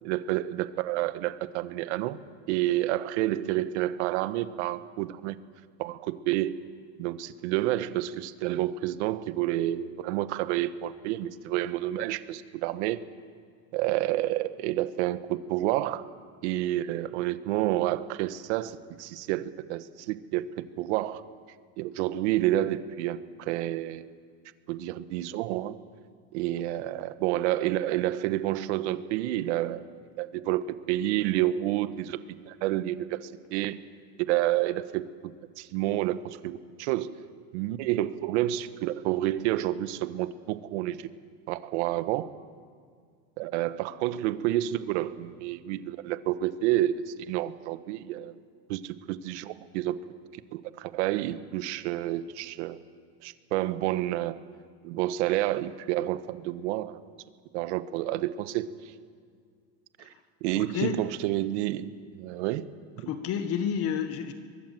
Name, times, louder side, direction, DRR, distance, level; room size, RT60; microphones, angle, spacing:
voice 1, 0.0-2.2 2.5-5.4 5.8-6.6 7.0-13.0 13.7-16.0 16.4-21.2 21.8-24.1 24.7-25.8 26.3-29.9 30.2-33.8 34.3-37.1 37.5-41.1 41.5-42.3 43.4-48.4 48.7-50.0 50.5-52.8 53.2-54.4 54.8-57.0 57.5-58.7 60.0-60.1 60.4-62.7 63.0-63.1, right 14 dB, 80° right, 13 dB, 1.3 m, -29 dB
voice 2, 60.5-61.0 63.1-64.3, left 8 dB, 45° left, 9 dB, 1.5 m, -30 dB
23.5 x 22.0 x 7.7 m, 2.1 s
cardioid pair, 155°, 34 cm